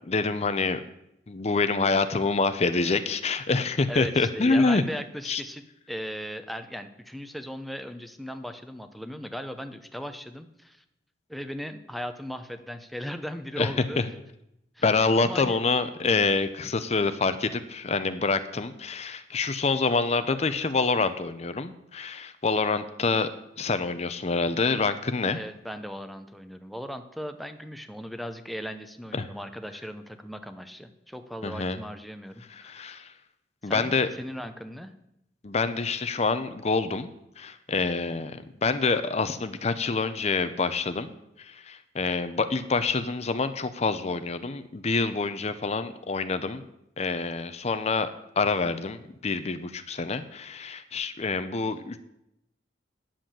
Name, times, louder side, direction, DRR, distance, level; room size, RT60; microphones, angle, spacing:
voice 1, 0.1-0.8 1.3-4.8 5.3-5.4 13.6-14.0 14.8-23.3 23.6-25.4 29.1-29.3 31.4-31.8 32.5-33.1 33.6-34.1 35.4-37.1 37.4-41.1 41.4-46.6 47.0-48.1 48.4-52.0, left 4 dB, 40° left, 11 dB, 0.6 m, -26 dB
voice 2, 3.9-10.8 11.3-14.0 14.8-14.9 15.2-15.6 25.3-32.8 33.6-34.9, equal, ahead, 8 dB, 0.7 m, -38 dB
10.0 x 7.7 x 7.4 m, 0.82 s
head